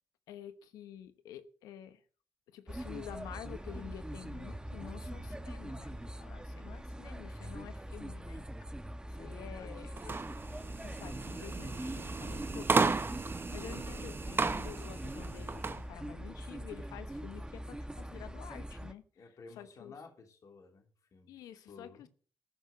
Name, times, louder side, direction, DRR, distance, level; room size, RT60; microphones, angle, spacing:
voice 1, 0.3-2.0 2.5-8.4 9.1-9.9 10.8-19.0 19.6-19.9 21.3-22.1, left 10 dB, 85° left, 1.0 m, -49 dB
sound 1, 2.7-18.9, right 1 dB, 15° right, 1.3 m, -43 dB
voice 2, 9.3-10.4 13.7-14.1 19.1-21.3 21.7-22.1, left 4 dB, 65° left, 3.2 m, -54 dB
sound 2, 10.0-15.8, right 4 dB, 40° right, 1.1 m, -34 dB
14.5 x 6.5 x 6.9 m
supercardioid pair, 45°, 6 cm